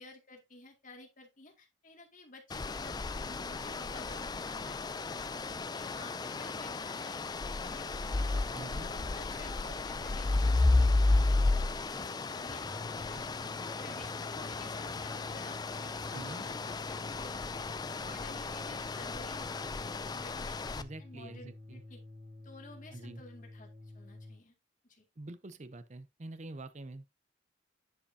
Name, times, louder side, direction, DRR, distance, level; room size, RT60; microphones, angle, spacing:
voice 1, 0.0-4.8 5.3-7.2 7.5-10.9 11.3-13.5 13.8-19.5 20.2-22.0 22.4-23.7 23.9-24.5 24.8-25.0, left 2 dB, 40° left, 2.1 m, -53 dB
sound 1, 2.5-20.8, left 2 dB, 20° left, 0.3 m, -33 dB
voice 2, 8.5-8.9 16.1-16.5 20.8-21.8 22.9-23.2 25.2-27.1, right 2 dB, 35° right, 0.6 m, -45 dB
Drum kit / Drum, 11.5-13.6 14.0-15.2 15.5-15.7 16.0-16.3, equal, 65° left, 1.7 m, -56 dB
sound 2, 12.6-24.4, left 2 dB, 80° right, 2.6 m, -49 dB
10.0 x 4.9 x 2.7 m
head